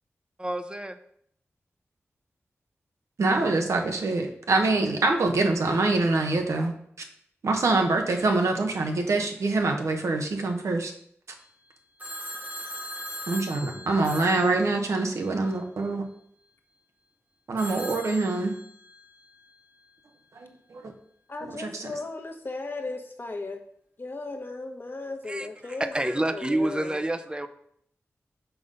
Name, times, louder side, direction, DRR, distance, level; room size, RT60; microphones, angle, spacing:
voice 1, 0.4-1.0 25.3-27.5, right 1 dB, 20° right, 10 dB, 0.6 m, -28 dB
voice 2, 3.2-6.7 7.4-10.9 13.3-16.0 17.5-18.6 20.3-20.9 21.4-21.9, right 3 dB, 75° right, 3 dB, 1.0 m, -25 dB
Telephone, 12.0-15.3 17.6-19.1, equal, 35° right, 1.4 m, -39 dB
voice 3, 21.3-23.6 24.0-27.0, left 3 dB, 45° left, 3 dB, 1.1 m, -36 dB
5.7 x 3.8 x 5.4 m, 0.67 s
cardioid pair, 50°, 5 cm